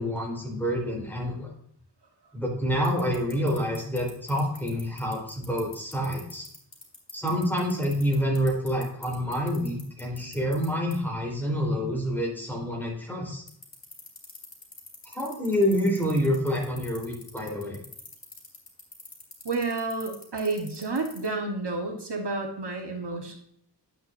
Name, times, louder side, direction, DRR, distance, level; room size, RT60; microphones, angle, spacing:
voice 1, 0.0-1.5 2.3-6.5 7.1-13.4 15.0-17.8, equal, 5° left, -2 dB, 3.6 m, -27 dB
sound 1, 2.8-10.7 10.9-11.0 13.5-21.3, left 4 dB, 85° left, 2.5 m, -43 dB
voice 2, 19.4-23.4, right 3 dB, 70° right, 2 dB, 1.3 m, -30 dB
10.0 x 7.8 x 2.6 m, 0.67 s
wide cardioid pair, 70°, 42 cm